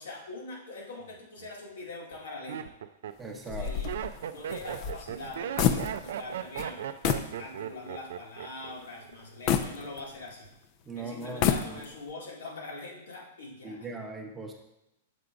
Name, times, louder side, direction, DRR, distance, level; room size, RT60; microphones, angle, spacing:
voice 1, 0.0-2.7 3.5-3.9 4.3-6.9 7.4-10.5 11.0-13.8, left 2 dB, 85° left, -3 dB, 2.2 m, -43 dB
Laughter, 1.1-1.5 2.1-8.7 9.0-9.5, right 9 dB, 75° right, 0.4 m, -37 dB
voice 2, 3.2-3.8 10.8-11.8 13.6-14.5, right 3 dB, 15° right, 2 dB, 0.8 m, -39 dB
sound 1, 3.5-6.3 6.6-6.7 7.0-7.4 7.8-7.9 9.5-10.5 11.2-12.1, left 8 dB, 40° left, 0.5 m, -29 dB
6.9 x 3.8 x 4.7 m, 0.90 s
hypercardioid pair, 140°, 0 cm